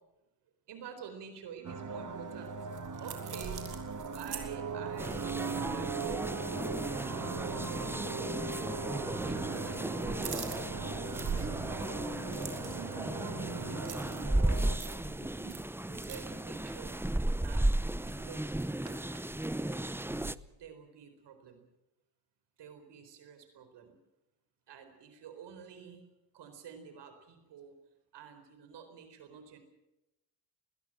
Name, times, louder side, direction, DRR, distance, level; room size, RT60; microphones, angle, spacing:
voice 1, 0.7-2.6 3.0-3.7 4.1-10.5 10.9-15.2 15.8-17.0 17.4-19.1 19.6-20.1 20.5-21.6 22.6-24.0 24.7-26.0 26.3-27.8 28.1-29.6, right 7 dB, 85° right, 8 dB, 4.3 m, -50 dB
sound 1, 1.6-14.8, right 4 dB, 50° right, 2.0 m, -39 dB
sound 2, 2.3-6.6 6.9-7.1 7.5-7.7 8.6-9.2 9.5-20.4, right 7 dB, 65° right, 4.4 m, -45 dB
sound 3, 5.0-20.3, right 1 dB, 5° right, 0.8 m, -35 dB
20.5 x 20.5 x 7.6 m, 0.92 s
cardioid pair, 65°, 40 cm